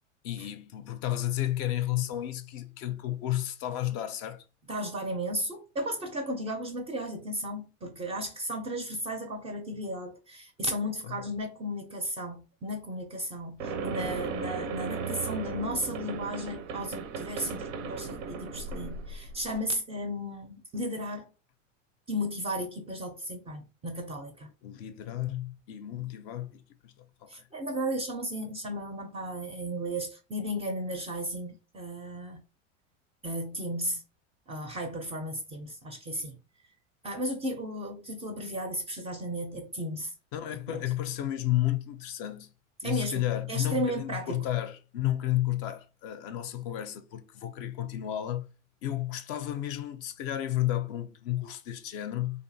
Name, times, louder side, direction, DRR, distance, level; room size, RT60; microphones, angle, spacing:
voice 1, 0.2-4.4 24.6-26.9 27.2-27.3 40.3-42.5 42.8-48.5 48.8-52.4, left 14 dB, 45° left, 0.4 m, -32 dB
voice 2, 4.7-21.3 22.1-24.5 27.3-32.4 33.2-34.0 34.5-36.4 37.0-40.1 40.7-40.8 42.8-44.5, equal, 15° right, 0.4 m, -34 dB
sound 1, 13.6-19.6, right 5 dB, 80° right, 0.5 m, -36 dB
2.6 x 2.4 x 2.6 m
hypercardioid pair, 100°, 39 cm